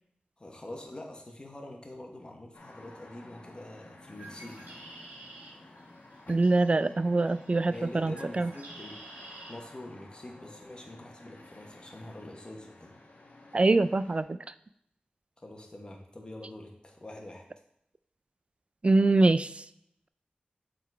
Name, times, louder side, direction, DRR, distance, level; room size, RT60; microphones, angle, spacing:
voice 1, 0.4-4.6 7.7-12.9 15.4-17.5, left 1 dB, 30° left, 1 dB, 1.3 m, -45 dB
sound 1, 2.5-14.2, left 2 dB, 60° left, 1.1 m, -52 dB
Bird, 4.0-9.5, right 2 dB, 80° right, 1.8 m, -50 dB
voice 2, 6.3-8.5 13.5-14.4 18.8-19.6, right 2 dB, 40° right, 14 dB, 0.3 m, -24 dB
7.3 x 3.9 x 4.7 m, 0.75 s
wide cardioid pair, 90°, 3 cm